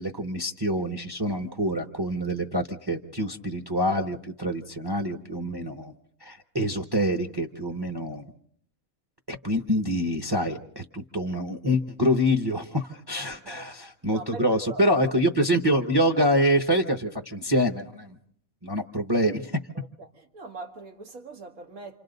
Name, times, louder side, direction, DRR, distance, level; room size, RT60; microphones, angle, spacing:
voice 1, 0.0-5.9 6.2-8.2 9.3-18.2 18.6-19.5, equal, 20° right, 0.8 m, -26 dB
voice 2, 13.1-13.7 14.1-14.9 20.0-22.0, right 3 dB, 85° right, 2.1 m, -42 dB
27.5 x 26.0 x 4.0 m
omnidirectional pair, 1.4 m